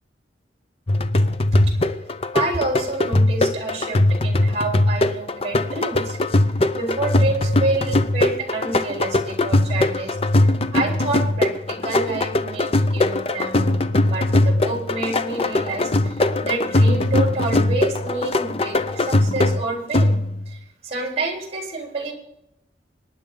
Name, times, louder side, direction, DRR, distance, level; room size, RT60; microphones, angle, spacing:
sound 1, 0.9-20.5, left 2 dB, 35° left, 0.7 m, -20 dB
voice 1, 2.3-6.2 6.7-10.2 10.4-13.8 14.0-20.2 20.5-22.1, right 2 dB, 35° right, 1 dB, 3.9 m, -28 dB
25.5 x 10.0 x 3.9 m, 0.83 s
head